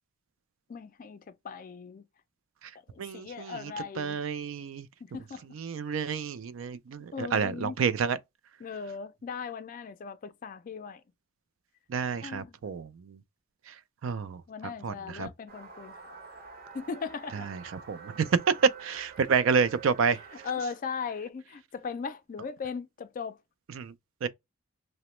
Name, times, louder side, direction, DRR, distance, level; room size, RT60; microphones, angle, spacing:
voice 1, 0.7-2.1 2.9-4.2 5.0-5.4 7.1-7.8 8.6-11.0 12.2-12.6 14.5-16.2 16.7-17.5 20.4-23.4, left 5 dB, 40° left, 0.3 m, -38 dB
voice 2, 3.0-3.7 4.0-4.9 5.5-8.2 11.9-13.2 13.7-13.8 14.0-14.4 14.8-15.3 17.3-17.6 17.9-18.3 18.8-20.2 23.7-23.9 24.2-24.3, right 6 dB, 70° right, 0.4 m, -30 dB
sound 1, 15.5-20.7, right 5 dB, 50° right, 0.7 m, -47 dB
2.9 x 2.1 x 3.0 m
head